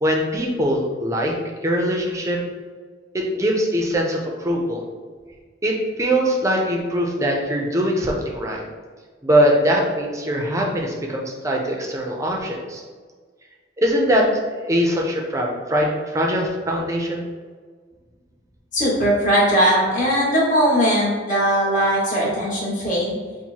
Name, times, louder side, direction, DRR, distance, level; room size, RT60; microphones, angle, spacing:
voice 1, 0.0-1.3 1.6-2.4 3.1-4.8 5.6-8.6 9.2-12.8 13.8-17.3, equal, 15° right, 0 dB, 0.5 m, -22 dB
voice 2, 18.7-23.2, equal, 40° left, -6 dB, 1.4 m, -19 dB
4.1 x 2.1 x 4.5 m, 1.5 s
head